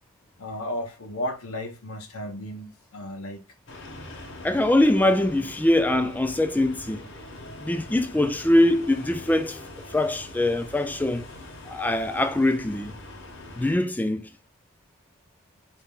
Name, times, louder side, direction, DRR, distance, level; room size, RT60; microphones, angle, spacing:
voice 1, 0.4-3.4, left 1 dB, 90° left, 0.9 m, -34 dB
sound 1, 3.7-13.8, left 2 dB, 55° left, 1.0 m, -43 dB
voice 2, 4.4-7.0 7.6-9.6 9.9-11.2 11.7-13.0 13.6-14.3, left 1 dB, 10° left, 0.3 m, -22 dB
4.0 x 2.7 x 3.6 m
head